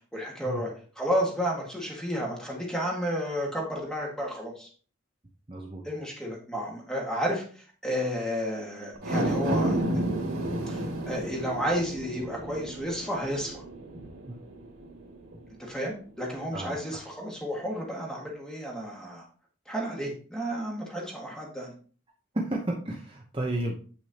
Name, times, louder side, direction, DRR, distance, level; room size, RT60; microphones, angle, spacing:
voice 1, 0.1-4.7 5.8-9.8 10.7-13.6 15.6-19.2 19.6-21.7, equal, 5° left, -2 dB, 1.8 m, -32 dB
voice 2, 5.5-5.8 14.3-14.4 16.5-17.0 22.3-23.8, right 1 dB, 25° right, -1 dB, 0.8 m, -32 dB
sound 1, 8.9-15.5 15.9-16.0, right 1 dB, 90° right, 2.1 m, -31 dB
8.2 x 6.1 x 2.9 m, 0.40 s
head